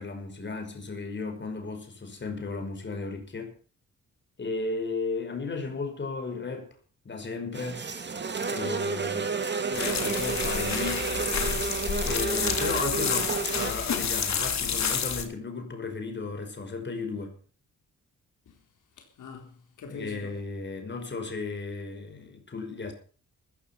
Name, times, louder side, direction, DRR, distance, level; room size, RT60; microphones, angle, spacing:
voice 1, 0.0-3.5 4.4-6.7 7.1-7.9 8.5-9.5 9.7-11.7 12.0-17.4 19.9-22.9, left 3 dB, 35° left, 5.6 m, -35 dB
sound 1, 7.5-13.7, right 4 dB, 35° right, 2.6 m, -31 dB
sound 2, 9.7-15.2, left 6 dB, 60° left, 3.2 m, -29 dB
voice 2, 19.0-20.4, left 4 dB, 75° left, 4.0 m, -44 dB
15.0 x 14.0 x 5.8 m
cardioid pair, 110°, 31 cm